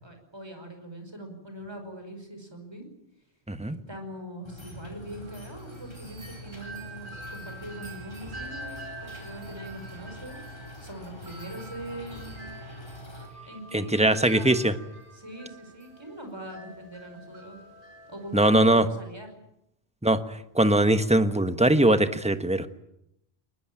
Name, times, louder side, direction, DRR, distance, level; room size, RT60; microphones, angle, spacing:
voice 1, 0.0-2.9 3.9-8.7 9.0-12.4 13.5-14.6 15.1-17.6 18.1-19.3, right 1 dB, 25° right, 5 dB, 5.2 m, -42 dB
sound 1, 4.4-13.3, equal, 25° left, 4.4 m, -44 dB
Wind chime, 5.0-18.4, right 2 dB, 55° right, 5.1 m, -46 dB
voice 2, 13.7-14.7 18.3-18.9 20.0-20.2 20.5-22.7, right 1 dB, 5° right, 9 dB, 1.2 m, -21 dB
22.0 x 20.5 x 8.9 m, 0.81 s
omnidirectional pair, 1.1 m